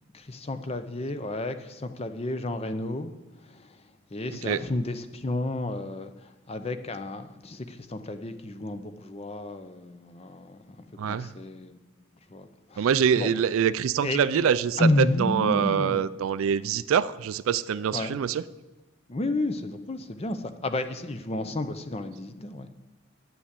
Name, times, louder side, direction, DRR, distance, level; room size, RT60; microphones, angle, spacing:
voice 1, 0.1-3.8 4.1-11.8 12.3-12.9 13.2-13.3 14.0-14.4 14.8-16.0 17.9-18.2 19.1-22.7, left 2 dB, 25° left, 10 dB, 0.6 m, -31 dB
voice 2, 11.0-11.3 12.8-18.4, right 8 dB, 70° right, 16 dB, 0.3 m, -25 dB
9.4 x 6.1 x 8.2 m, 1.1 s
head